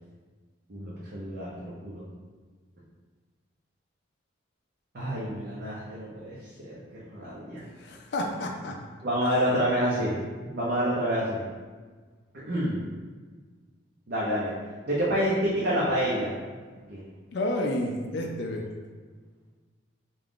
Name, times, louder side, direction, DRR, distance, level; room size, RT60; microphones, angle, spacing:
voice 1, 0.7-2.0 4.9-6.7 7.1-7.6 9.0-11.4 12.3-12.8 14.1-14.5 14.9-16.3 16.9-17.0, equal, 50° right, -7 dB, 0.6 m, -28 dB
voice 2, 7.6-8.8 9.2-9.3 17.3-18.7, left 1 dB, 55° left, 1 dB, 0.4 m, -31 dB
3.7 x 2.4 x 3.6 m, 1.5 s
head